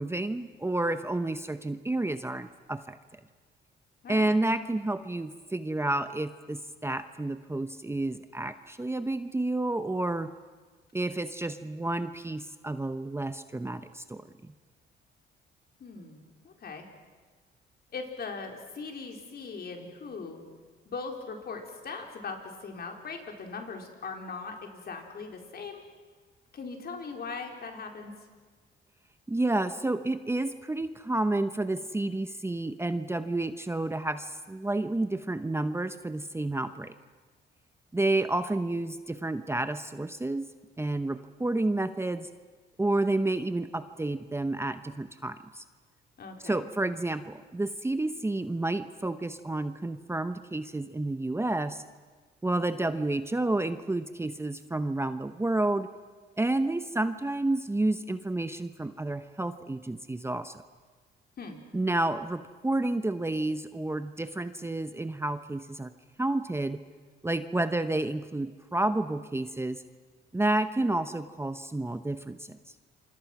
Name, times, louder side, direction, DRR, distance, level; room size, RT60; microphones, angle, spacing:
voice 1, 0.0-3.0 4.1-10.3 10.9-14.2 29.3-36.9 37.9-40.5 40.8-42.3 42.8-45.6 46.4-51.8 52.4-55.9 56.4-60.6 61.7-65.9 66.2-66.8 67.2-69.8 70.3-72.6, right 2 dB, 10° right, 10 dB, 0.9 m, -30 dB
voice 2, 4.0-4.3 15.8-16.8 17.9-20.4 20.9-25.8 26.5-28.1 46.2-46.6 61.4-61.6, left 4 dB, 50° left, 3 dB, 4.3 m, -40 dB
28.0 x 25.5 x 6.1 m, 1.4 s
cardioid pair, 90°, 20 cm